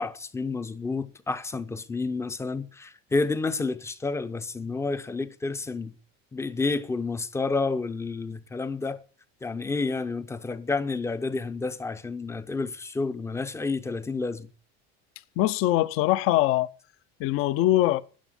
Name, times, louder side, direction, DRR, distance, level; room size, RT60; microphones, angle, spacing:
voice 1, 0.0-5.9 6.3-9.0 9.4-14.5, left 3 dB, 10° left, 0.7 m, -30 dB
voice 2, 15.4-16.7 17.2-18.0, left 15 dB, 45° left, 0.7 m, -22 dB
12.5 x 10.0 x 8.8 m
cardioid pair, 180°, 31 cm